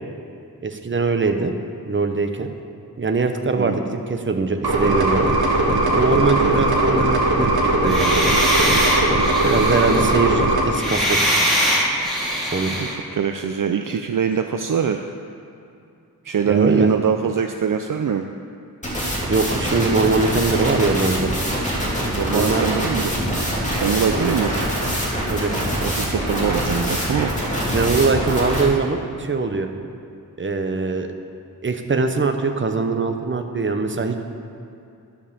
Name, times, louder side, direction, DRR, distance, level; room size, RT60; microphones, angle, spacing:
voice 1, 0.6-1.5 1.8-2.5 3.0-5.3 5.9-7.5 7.8-8.2 9.4-11.2 12.5-12.8 16.5-16.9 19.3-21.3 22.3-22.7 24.1-24.3 25.3-25.6 27.6-29.7 30.4-31.1 31.6-34.2, right 4 dB, 30° right, 6 dB, 0.8 m, -22 dB
sound 1, 4.6-10.6, right 1 dB, 85° right, 1.6 m, -19 dB
sound 2, 7.9-12.9, equal, ahead, 2.7 m, -22 dB
voice 2, 12.7-15.0 16.2-18.3 22.1-23.3 23.8-24.6 25.8-27.3, right 7 dB, 60° right, 6 dB, 0.5 m, -23 dB
sound 3, 18.8-28.6, equal, 20° left, 2.5 m, -24 dB
12.5 x 5.4 x 6.7 m, 2.5 s
wide cardioid pair, 100°, 37 cm